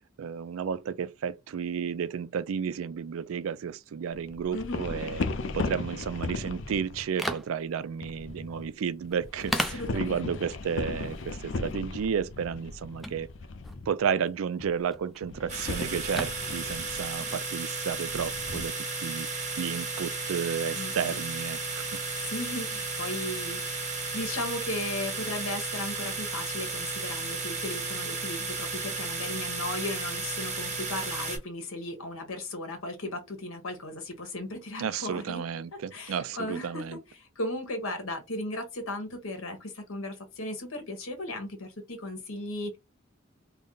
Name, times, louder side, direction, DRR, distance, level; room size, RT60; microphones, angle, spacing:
voice 1, 0.2-5.3 5.5-13.3 13.9-22.0 34.8-37.0, right 7 dB, 80° right, 0.4 m, -32 dB
sound 1, 4.1-7.1 8.0-8.7 9.0-13.9 14.6-15.0 15.2-17.2 17.9-18.7, left 3 dB, 60° left, 0.5 m, -36 dB
voice 2, 4.5-4.8 9.4-10.4 20.7-21.2 22.2-35.4 35.9-36.8 37.1-42.8, left 2 dB, 85° left, 1.3 m, -36 dB
sound 2, 7.0-21.1, equal, ahead, 0.3 m, -41 dB
sound 3, 15.5-31.4, right 3 dB, 35° right, 1.4 m, -34 dB
3.5 x 2.1 x 3.8 m
head